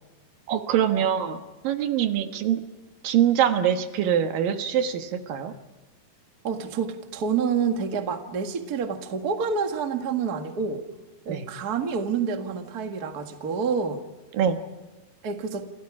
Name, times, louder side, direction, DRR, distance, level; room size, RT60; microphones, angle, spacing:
voice 1, 0.5-2.6 3.0-5.5 11.3-11.5 14.3-14.6, right 9 dB, 80° right, 7 dB, 3.2 m, -24 dB
voice 2, 6.4-10.8 11.3-14.0 15.2-15.7, right 6 dB, 35° right, 5 dB, 1.7 m, -28 dB
29.0 x 28.5 x 4.9 m, 1.2 s
omnidirectional pair, 4.0 m